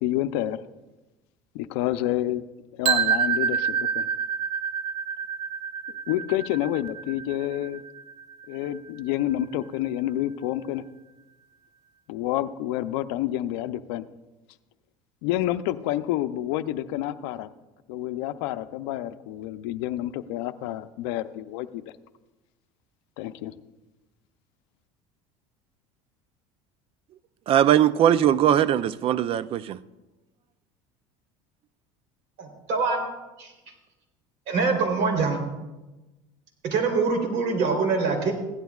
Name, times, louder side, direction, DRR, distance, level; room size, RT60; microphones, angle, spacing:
voice 1, 0.0-0.6 1.5-2.4 2.8-4.1 6.1-7.8 8.5-10.8 12.1-14.1 15.2-17.5 17.9-21.8 23.2-23.5, left 13 dB, 80° left, 0.6 m, -28 dB
sound 1, 2.8-8.8, right 7 dB, 85° right, 1.0 m, -28 dB
voice 2, 27.5-29.8, right 10 dB, 45° right, 0.5 m, -20 dB
voice 3, 32.4-33.1 33.4-33.5 34.5-35.4 36.6-38.3, right 4 dB, 60° right, 3.4 m, -24 dB
16.0 x 11.0 x 2.4 m
supercardioid pair, 115°, 14 cm